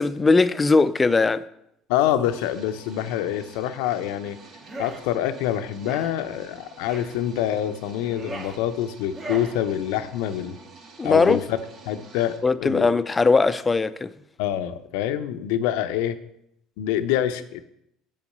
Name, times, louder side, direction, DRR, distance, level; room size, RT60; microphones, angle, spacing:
voice 1, 0.0-1.4 11.0-11.4 12.4-14.1, left 3 dB, 25° left, 0.5 m, -19 dB
voice 2, 1.9-4.4 4.8-10.6 11.0-11.6 11.9-12.3 12.6-12.9 14.4-16.2 16.8-17.6, left 11 dB, 75° left, 0.6 m, -26 dB
sound 1, 2.2-12.4, right 3 dB, 55° right, 2.1 m, -48 dB
sound 2, 4.6-5.0 5.8-6.1 6.9-7.1 7.9-8.6 9.1-9.5, right 2 dB, 40° right, 2.2 m, -37 dB
7.2 x 5.0 x 6.7 m
hypercardioid pair, 70°, 0 cm